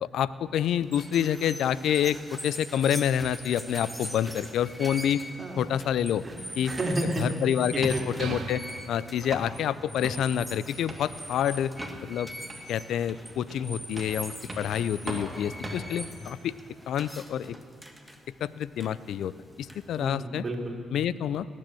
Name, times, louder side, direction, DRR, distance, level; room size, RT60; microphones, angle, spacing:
voice 1, 0.0-5.2 5.6-6.2 6.6-6.7 7.2-8.6 8.9-11.7 12.0-12.3 12.7-16.5 16.9-17.6 18.4-19.3 19.6-20.4 20.9-21.5, left 9 dB, 75° left, 18 dB, 0.4 m, -28 dB
sound 1, 0.8-20.1, equal, ahead, 1.5 m, -42 dB
sound 2, 4.8-16.4, right 1 dB, 20° right, 2.8 m, -42 dB
voice 2, 5.4-5.8 6.2-7.2 7.9-8.0 20.0-20.8, right 1 dB, 40° right, 1 dB, 2.6 m, -32 dB
sound 3, 8.2-9.8, right 6 dB, 65° right, 0.9 m, -40 dB
18.0 x 7.7 x 7.6 m, 2.1 s
supercardioid pair, 60°, 0 cm